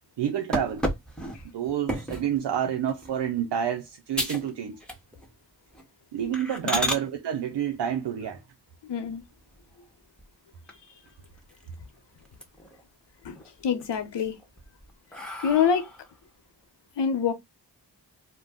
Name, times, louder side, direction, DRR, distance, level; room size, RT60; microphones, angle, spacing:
voice 1, 0.2-0.9 1.5-4.8 6.1-8.4, right 9 dB, 80° right, 0.6 m, -29 dB
sound 1, 0.5-2.3 2.9-3.2 3.6-3.7 4.1-4.5 4.8-5.3 5.7-5.8 6.3-7.0 9.0-9.7 10.2-10.3 10.7-10.8 11.1-11.9 12.2-12.8 13.2-13.9 14.4-16.1, equal, ahead, 1.1 m, -33 dB
voice 2, 8.9-9.2 13.2-13.4 13.6-14.4 15.4-15.9 17.0-17.3, left 7 dB, 80° left, 0.8 m, -25 dB
2.5 x 2.2 x 3.5 m
cardioid pair, 40°, 42 cm